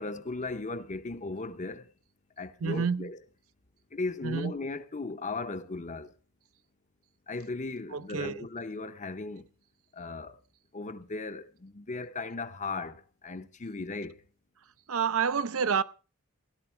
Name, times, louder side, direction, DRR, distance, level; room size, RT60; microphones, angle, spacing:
voice 1, 0.0-1.9 2.4-3.2 3.9-6.1 7.3-9.5 9.9-10.4 10.7-14.2, left 3 dB, 35° left, 0.8 m, -37 dB
voice 2, 2.6-3.1 4.2-4.5 7.9-8.5 14.9-15.8, right 6 dB, 65° right, 0.6 m, -29 dB
16.5 x 12.0 x 4.4 m
head